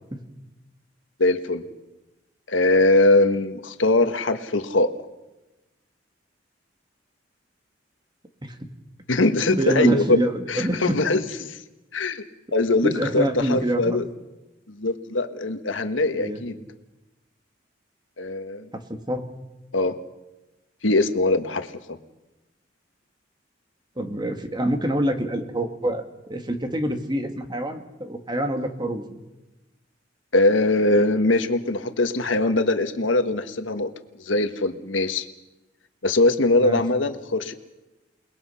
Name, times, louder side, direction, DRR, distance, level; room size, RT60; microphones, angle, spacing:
voice 1, 1.2-1.6 2.5-4.9 9.1-10.2 10.5-11.6 11.9-12.2 12.5-14.0 14.7-16.5 18.2-18.7 19.7-19.9 20.8-21.7 30.3-33.9 34.3-35.2 36.0-37.5, left 2 dB, 85° left, 9 dB, 1.5 m, -21 dB
voice 2, 9.5-11.0 12.8-14.0 16.1-16.4 18.7-19.3 24.0-29.1 36.6-36.8, right 1 dB, 25° right, 6 dB, 2.0 m, -26 dB
28.5 x 20.0 x 5.7 m, 1.0 s
head